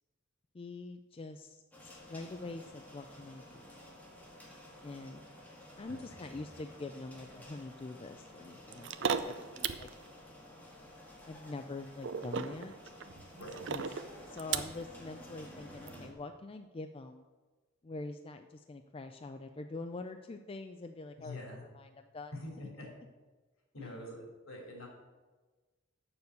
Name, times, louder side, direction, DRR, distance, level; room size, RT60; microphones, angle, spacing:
voice 1, 0.5-3.7 4.8-5.2 5.8-9.9 11.3-12.9 13.7-13.8 14.3-17.2 17.8-21.4 21.7-22.3 23.8-23.9, left 3 dB, 25° left, 7 dB, 0.4 m, -45 dB
sound 1, 1.7-16.1, left 1 dB, 10° left, 1.9 m, -53 dB
sound 2, 8.7-9.9 12.0-14.8 15.9-16.0, right 6 dB, 60° right, 0.6 m, -36 dB
voice 2, 21.2-21.6 22.3-22.9 23.7-24.9, left 1 dB, 70° left, 0 dB, 3.4 m, -45 dB
7.0 x 7.0 x 8.0 m, 1.3 s
head